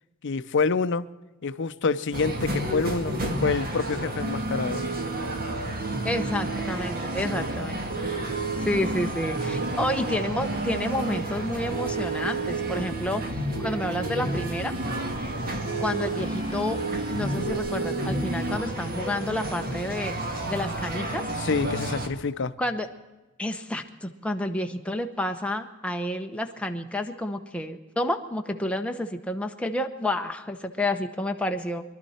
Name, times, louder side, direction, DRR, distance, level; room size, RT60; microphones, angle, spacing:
voice 1, 0.2-1.1 1.4-3.1 3.4-4.9 21.4-22.5, left 4 dB, 55° left, 0.6 m, -27 dB
sound 1, 2.1-22.1, right 2 dB, 45° right, 1.6 m, -30 dB
voice 2, 6.0-7.8 8.6-13.2 13.6-14.7 15.8-20.1 20.5-21.3 22.6-22.9 23.4-31.8, left 1 dB, 5° left, 0.9 m, -30 dB
23.5 x 12.0 x 4.3 m
head